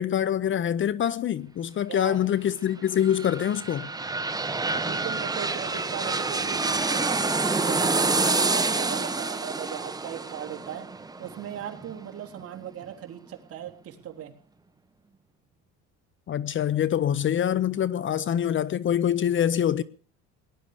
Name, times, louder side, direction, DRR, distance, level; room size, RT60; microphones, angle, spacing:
voice 1, 0.0-3.9 16.3-19.8, left 10 dB, 40° left, 0.7 m, -25 dB
sound 1, 2.8-12.4 12.8-12.9, right 3 dB, 10° right, 1.2 m, -27 dB
voice 2, 4.7-7.3 7.6-10.9 11.2-14.3, right 10 dB, 45° right, 3.3 m, -38 dB
19.0 x 11.5 x 6.7 m
cardioid pair, 125°, 32 cm